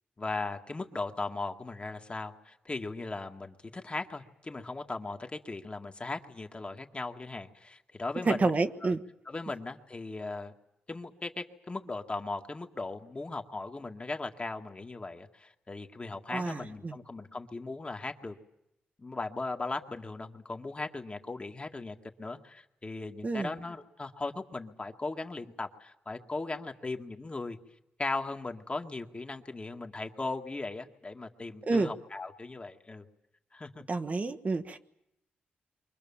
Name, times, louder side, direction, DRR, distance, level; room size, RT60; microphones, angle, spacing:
voice 1, 0.2-8.5 8.8-9.0 9.3-10.5 10.9-18.4 19.0-27.6 28.0-33.1 33.5-33.9, left 3 dB, 30° left, 5 dB, 1.9 m, -38 dB
voice 2, 8.2-9.0 16.3-17.0 23.2-23.5 31.7-31.9 33.9-34.8, right 3 dB, 45° right, 8 dB, 1.3 m, -29 dB
28.5 x 24.0 x 7.3 m, 0.83 s
cardioid pair, 55°, 4 cm